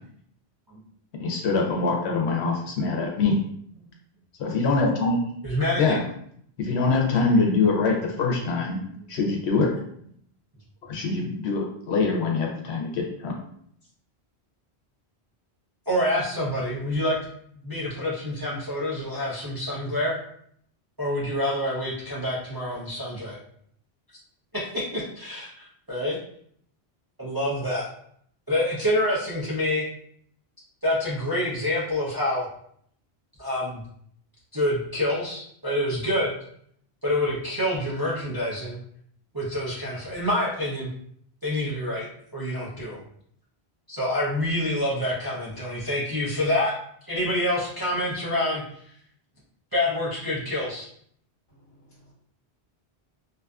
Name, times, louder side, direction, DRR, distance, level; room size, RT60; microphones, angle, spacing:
voice 1, 1.2-3.4 4.4-5.2 5.8-6.0 6.6-8.8 9.1-9.7 10.9-13.3, left 3 dB, 80° left, 0 dB, 0.8 m, -24 dB
voice 2, 5.4-6.0 8.8-8.9 15.9-17.2 17.6-20.2 21.0-23.4 24.5-25.5 25.9-26.2 27.2-27.9 28.5-29.8 30.8-32.5 33.4-33.8 34.5-36.3 37.0-38.8 39.3-40.9 41.4-42.1 42.3-43.0 43.9-46.7 47.1-48.6 49.7-50.9, left 1 dB, 30° right, -8 dB, 0.5 m, -27 dB
voice 3, 51.5-52.1, equal, 50° left, -6 dB, 1.3 m, -57 dB
2.6 x 2.4 x 2.3 m, 0.65 s
omnidirectional pair, 1.1 m